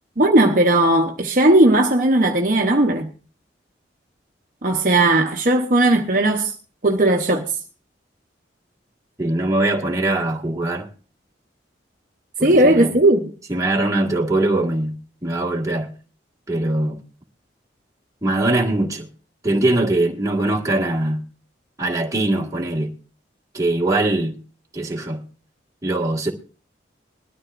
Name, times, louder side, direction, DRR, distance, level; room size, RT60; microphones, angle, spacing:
voice 1, 0.2-3.1 4.6-6.5 6.8-7.5 12.4-13.2, right 1 dB, 45° right, 0.9 m, -16 dB
voice 2, 9.2-10.9 12.4-12.9 13.5-15.9 16.5-17.0 18.2-19.1 19.4-21.2 21.8-22.9 23.5-24.4 24.7-25.2 25.8-26.3, right 2 dB, 15° right, 1.7 m, -22 dB
20.5 x 13.0 x 2.5 m
head